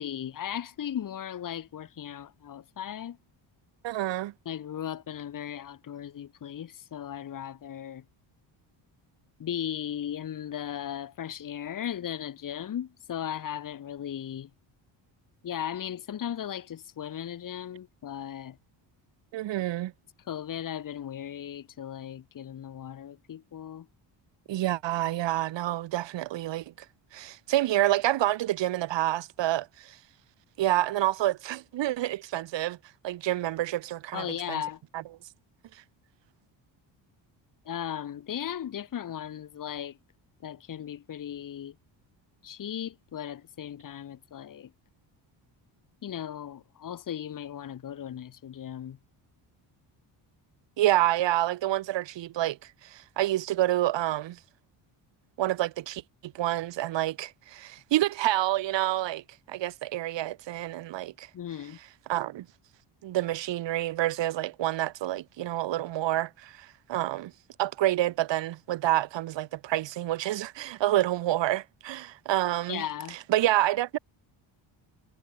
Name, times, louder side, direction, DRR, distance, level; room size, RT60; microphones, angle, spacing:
voice 1, 0.0-3.2 4.4-8.0 9.4-14.5 15.4-18.6 20.2-23.9 34.1-34.8 37.6-40.0 40.4-41.7 42.4-44.7 46.0-49.0 61.3-61.8 72.7-73.2, left 10 dB, 45° left, 4.6 m, -37 dB
voice 2, 3.8-4.3 19.3-19.9 24.5-26.6 27.1-30.0 30.6-32.8 33.0-34.6 50.8-52.6 52.9-54.4 55.4-59.2 59.5-61.3 62.1-62.5 63.0-67.3 67.6-72.8 73.3-74.0, right 14 dB, 70° right, 4.1 m, -28 dB
cardioid pair, 165°, 45 cm